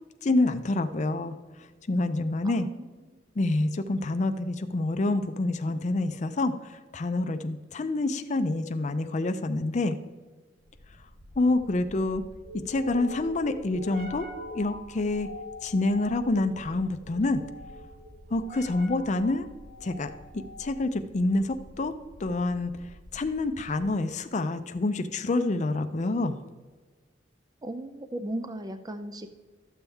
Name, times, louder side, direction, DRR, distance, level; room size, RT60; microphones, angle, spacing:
voice 1, 0.2-1.3 1.9-2.7 3.4-10.0 11.4-12.2 12.7-15.3 15.6-17.4 18.3-19.5 19.8-21.9 22.2-22.7 23.1-26.4, left 2 dB, 40° left, 8 dB, 0.5 m, -27 dB
voice 2, 2.4-3.2 27.6-29.3, right 1 dB, 20° right, 9 dB, 0.4 m, -37 dB
sound 1, 10.6-24.0, left 1 dB, 55° right, 1.2 m, -45 dB
12.5 x 7.0 x 3.4 m, 1.4 s
head